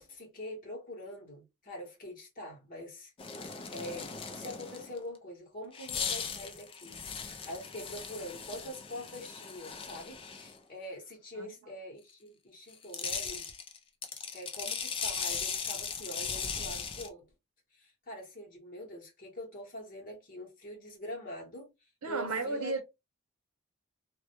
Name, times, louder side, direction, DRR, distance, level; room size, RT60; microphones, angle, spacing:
voice 1, 0.0-3.1 3.7-13.5 14.3-17.3 17.7-21.7 22.0-22.7, left 1 dB, 40° left, 0.9 m, -44 dB
sound 1, 3.2-5.0 5.7-10.6 12.7-17.1, left 6 dB, 25° left, 0.3 m, -38 dB
voice 2, 22.0-22.8, right 3 dB, 85° right, 0.7 m, -33 dB
2.2 x 2.1 x 2.8 m
head